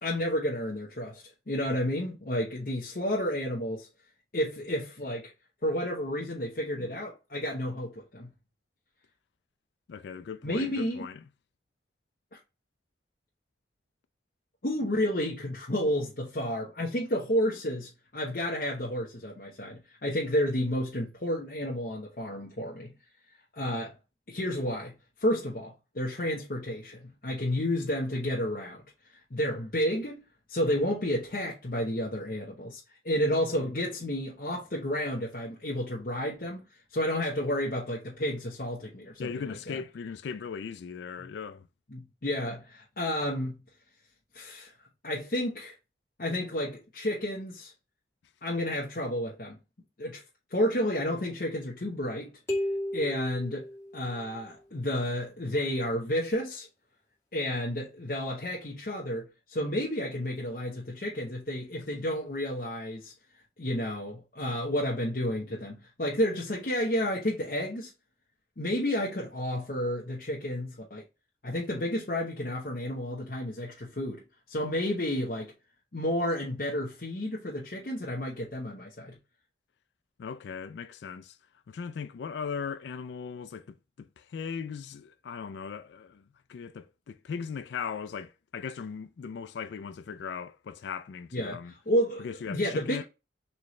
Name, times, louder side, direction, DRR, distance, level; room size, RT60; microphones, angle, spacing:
voice 1, 0.0-3.9 4.3-5.3 5.6-8.3 10.4-11.1 14.6-22.9 23.5-23.9 24.3-24.9 25.2-28.8 29.3-36.7 36.9-39.8 41.2-41.3 41.9-43.6 44.3-44.7 45.0-45.7 46.2-47.7 48.4-49.6 50.0-50.2 50.5-52.3 52.9-53.7 53.9-56.7 57.3-63.1 63.6-67.9 68.6-71.0 71.4-75.5 75.9-79.2 91.3-93.0, equal, 50° left, 1.0 m, -31 dB
voice 2, 9.9-11.2 39.2-41.7 80.2-81.4 81.7-83.6 84.0-86.2 86.5-91.7 92.2-93.0, left 6 dB, 70° left, 0.3 m, -38 dB
sound 1, 52.5-54.4, left 1 dB, 15° left, 2.0 m, -34 dB
4.3 x 3.1 x 3.1 m
head